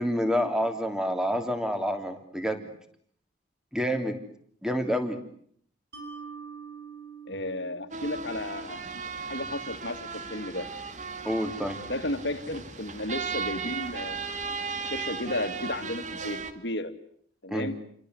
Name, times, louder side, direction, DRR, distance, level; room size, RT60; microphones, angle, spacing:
voice 1, 0.0-2.7 3.7-4.2 4.6-5.2 11.2-11.8 17.5-17.7, equal, 5° right, 7 dB, 3.3 m, -28 dB
Mallet percussion, 5.9-9.2, right 6 dB, 55° right, 7.8 m, -45 dB
voice 2, 7.3-8.9 9.3-10.7 11.9-14.2 14.8-16.9 17.4-17.8, left 1 dB, 65° left, 9 dB, 2.5 m, -33 dB
sound 1, 7.9-16.5, right 5 dB, 40° right, 2.3 m, -36 dB
29.5 x 24.5 x 8.1 m, 0.64 s
head